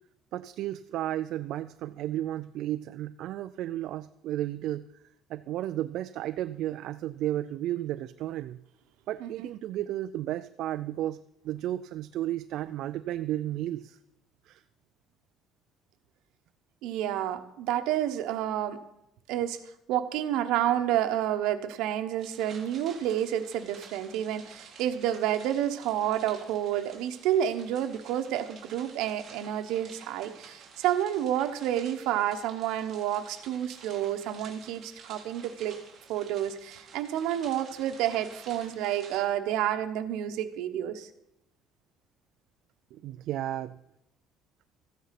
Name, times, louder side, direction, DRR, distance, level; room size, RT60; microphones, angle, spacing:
voice 1, 0.3-4.9 5.3-8.6 9.1-14.0 14.5-14.6 34.9-35.0 43.0-43.8, right 13 dB, 55° right, 11 dB, 0.4 m, -33 dB
voice 2, 16.8-18.8 19.3-19.6 19.9-35.8 36.1-41.1, right 11 dB, 80° right, 9 dB, 1.1 m, -29 dB
sound 1, 22.2-39.2, right 5 dB, 30° right, 2.5 m, -51 dB
14.0 x 9.4 x 5.9 m, 0.83 s
cardioid pair, 175°, 0 cm